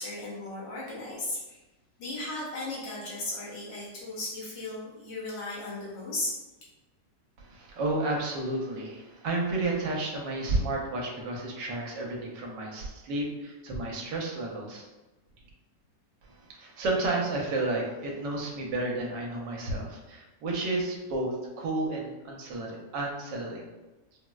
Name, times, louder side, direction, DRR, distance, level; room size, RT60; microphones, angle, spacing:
voice 1, 0.0-1.6 2.0-6.4, left 2 dB, 90° left, -6 dB, 1.7 m, -36 dB
voice 2, 7.4-14.8 16.2-23.6, right 2 dB, 80° right, -1 dB, 1.3 m, -32 dB
4.5 x 2.0 x 2.3 m, 1.1 s
omnidirectional pair, 1.9 m